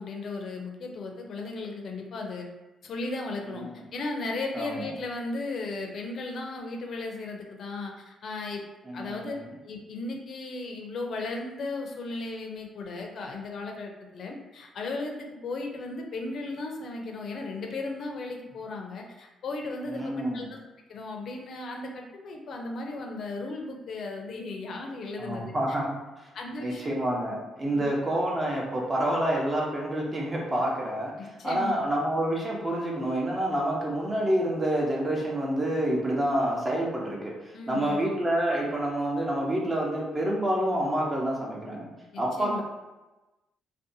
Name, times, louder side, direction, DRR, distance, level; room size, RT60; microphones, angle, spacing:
voice 1, 0.0-2.5 2.8-3.7 3.9-8.6 8.9-9.4 9.6-20.6 20.9-25.5 26.3-26.8 31.2-31.9 37.5-38.0 42.1-42.6, left 3 dB, 60° left, 2 dB, 0.5 m, -36 dB
voice 2, 3.5-3.8 4.5-4.9 8.9-9.5 19.9-20.5 25.2-25.9 26.2-26.3 26.6-31.1 31.4-41.9 42.2-42.6, right 1 dB, 25° right, -2 dB, 0.7 m, -28 dB
2.6 x 2.2 x 2.6 m, 1.1 s
cardioid pair, 90°, 0 cm